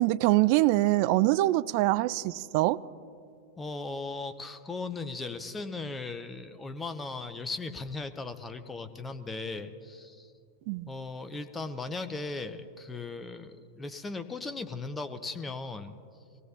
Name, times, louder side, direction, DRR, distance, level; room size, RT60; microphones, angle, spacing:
voice 1, 0.0-2.8 10.7-10.9, right 18 dB, 45° right, 17 dB, 0.3 m, -24 dB
voice 2, 3.6-10.3 10.9-16.0, left 3 dB, 15° left, 9 dB, 0.7 m, -37 dB
23.5 x 18.0 x 2.9 m, 2.5 s
figure-of-eight pair, 90°, 0 cm